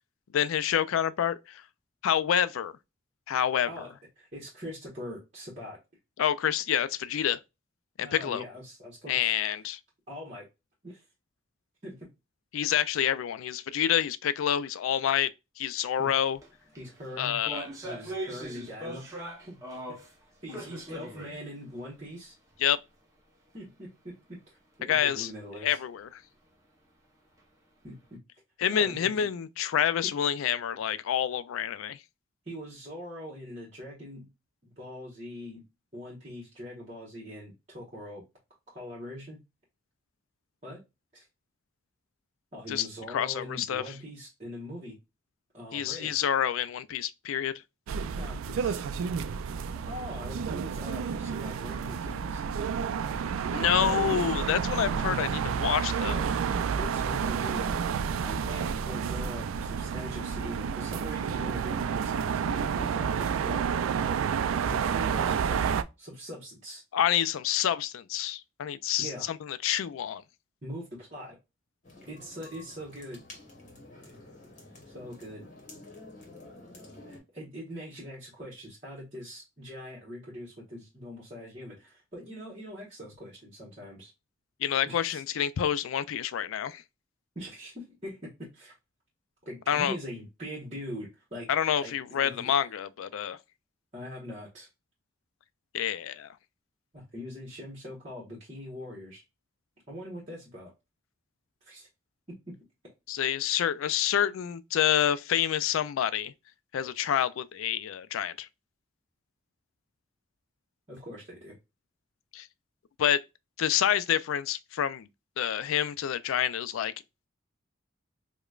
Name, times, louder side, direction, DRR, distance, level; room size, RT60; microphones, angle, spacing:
voice 1, 0.3-1.6 2.0-2.7 3.3-3.9 6.2-7.4 8.0-8.4 9.1-9.8 12.5-15.3 15.6-16.4 17.2-17.7 22.6-22.8 24.9-25.3 25.6-26.2 28.6-32.0 42.7-43.8 45.7-47.6 53.5-56.3 66.9-70.2 84.6-86.8 89.7-90.0 91.5-93.4 95.7-96.3 103.1-106.3 106.7-108.5 112.3-112.5 113.0-113.2 113.6-115.1 115.4-116.9, left 9 dB, 85° left, 0.3 m, -28 dB
voice 2, 3.7-5.8 8.0-9.3 10.1-10.5 10.8-11.0 11.8-12.1 16.0-16.1 16.8-17.4 17.8-19.6 20.4-22.3 23.5-25.8 27.8-27.9 28.7-29.3 30.0-30.1 32.4-34.3 34.6-35.6 35.9-38.2 38.7-39.4 40.6-40.8 41.1-41.2 42.5-45.0 45.5-46.2 48.2-48.8 49.2-52.4 54.9-55.1 56.4-57.7 58.2-63.7 64.6-66.8 69.0-69.3 70.6-71.4 72.1-73.2 74.9-75.5 77.1-84.1 84.8-85.2 87.3-88.7 89.4-91.5 91.8-92.7 93.9-94.7 96.9-99.2 99.9-100.7 101.6-101.9 102.5-102.6 110.9-111.6, equal, 35° right, 1.1 m, -42 dB
sound 1, 16.3-16.5 16.7-20.1 20.5-21.4 21.7-21.8 22.5-22.6, right 1 dB, 15° right, 0.8 m, -39 dB
sound 2, 47.9-65.8, right 6 dB, 85° right, 0.3 m, -30 dB
sound 3, 71.8-77.2, left 2 dB, 35° left, 1.0 m, -50 dB
4.8 x 2.2 x 2.3 m
head